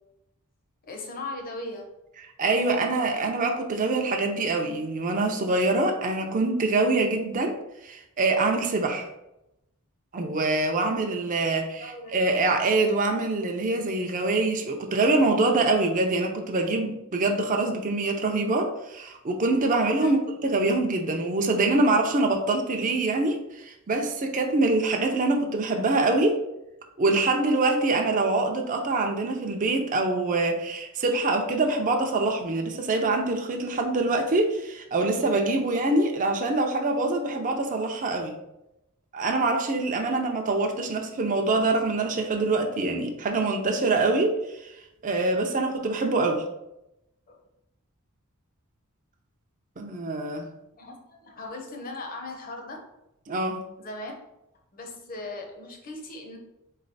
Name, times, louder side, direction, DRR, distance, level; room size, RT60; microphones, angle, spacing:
voice 1, 0.8-1.9 11.8-12.2 20.0-20.1 35.6-35.8 47.3-47.4 50.7-52.8 53.8-54.1 54.7-56.4, left 2 dB, 40° left, 2 dB, 0.8 m, -38 dB
voice 2, 2.4-7.5 7.8-9.1 10.1-26.4 27.0-38.3 39.1-44.4 44.6-44.7 45.0-46.4 49.8-50.4 53.3-53.6, right 2 dB, 35° right, 3 dB, 0.5 m, -25 dB
4.0 x 3.2 x 4.0 m, 0.87 s
head